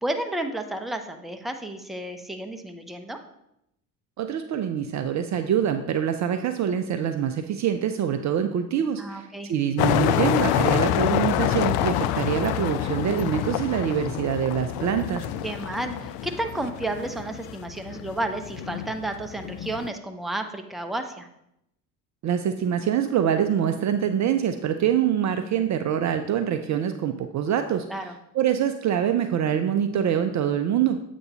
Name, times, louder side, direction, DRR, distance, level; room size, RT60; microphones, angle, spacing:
voice 1, 0.0-3.2 9.0-9.5 15.4-21.3 27.9-28.2, right 1 dB, ahead, 6 dB, 0.7 m, -32 dB
voice 2, 4.2-15.3 22.2-27.9 28.3-31.0, right 9 dB, 40° right, 8 dB, 0.5 m, -25 dB
sound 1, 9.8-19.9, left 11 dB, 55° left, 0.5 m, -27 dB
7.8 x 3.0 x 5.4 m, 0.80 s
hypercardioid pair, 60°, 47 cm